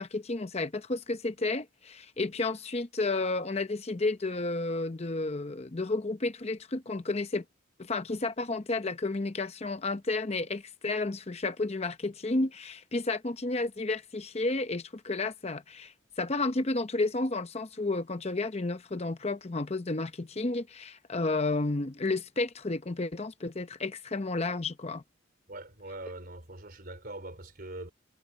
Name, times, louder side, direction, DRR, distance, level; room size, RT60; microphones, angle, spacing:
voice 1, 0.0-7.4 7.8-25.0, left 2 dB, 30° left, 0.7 m, -31 dB
voice 2, 25.5-27.9, right 2 dB, 45° right, 4.0 m, -42 dB
head